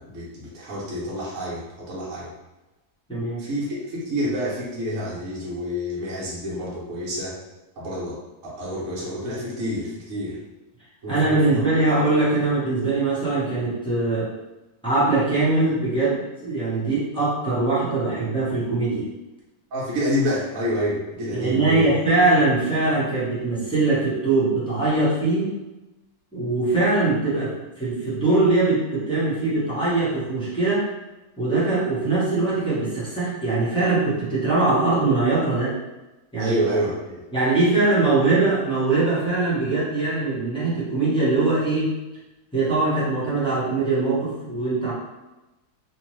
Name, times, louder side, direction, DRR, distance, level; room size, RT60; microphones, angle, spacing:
voice 1, 0.0-2.3 3.4-7.3 7.8-8.2 8.4-10.4 11.0-11.6 19.7-21.9 36.4-37.2, equal, 60° right, -7 dB, 1.1 m, -28 dB
voice 2, 11.1-14.3 14.8-19.1 21.3-25.5 26.3-30.9 31.4-35.8 36.3-36.6 37.3-41.9 42.5-44.9, right 3 dB, 5° left, -11 dB, 0.7 m, -22 dB
2.9 x 2.2 x 3.0 m, 1.0 s
omnidirectional pair, 1.6 m